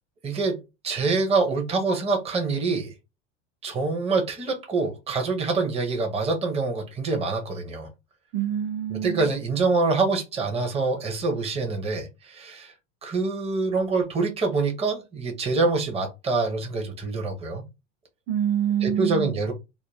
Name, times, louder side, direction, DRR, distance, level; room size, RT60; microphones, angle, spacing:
voice 1, 0.2-2.9 3.6-7.9 8.9-12.7 13.0-17.6 18.8-19.5, right 3 dB, 15° right, 0.8 m, -25 dB
voice 2, 8.3-9.3 18.3-19.3, right 9 dB, 45° right, 0.8 m, -26 dB
2.6 x 2.1 x 3.3 m
supercardioid pair, 115°, 37 cm